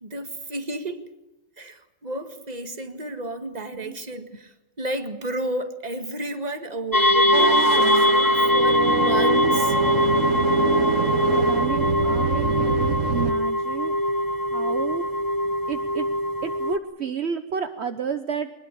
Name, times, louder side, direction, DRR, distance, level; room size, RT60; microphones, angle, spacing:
voice 1, 0.0-1.1 1.6-9.8, right 1 dB, 35° right, 7 dB, 2.0 m, -32 dB
sound 1, 6.9-16.8, left 1 dB, 20° left, 0.9 m, -22 dB
sound 2, 7.3-13.3, right 5 dB, 85° right, 1.7 m, -25 dB
voice 2, 10.7-14.0 14.5-15.2 15.7-16.1 16.4-18.5, right 6 dB, 60° right, 8 dB, 1.3 m, -31 dB
23.0 x 20.5 x 8.4 m, 0.90 s
omnidirectional pair, 1.3 m